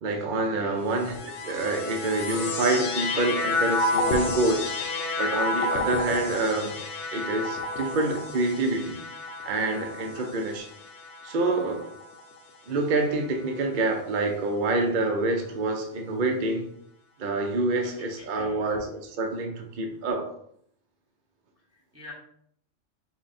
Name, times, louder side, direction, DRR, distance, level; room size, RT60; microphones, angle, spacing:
voice 1, 0.0-1.1 1.4-4.7 5.2-6.8 7.1-9.0 9.4-10.7 11.2-11.9 12.7-16.7 17.2-20.3, right 2 dB, 50° right, 3 dB, 0.6 m, -27 dB
voice 2, 0.6-0.9 10.0-10.4 17.8-18.8 21.7-22.1, left 2 dB, 15° right, -2 dB, 0.7 m, -47 dB
sound 1, 0.9-12.4 13.1-13.9, left 2 dB, 70° left, 1.0 m, -31 dB
sound 2, 2.3-3.6, left 3 dB, 90° left, 1.4 m, -46 dB
5.9 x 2.2 x 4.1 m, 0.67 s
omnidirectional pair, 1.3 m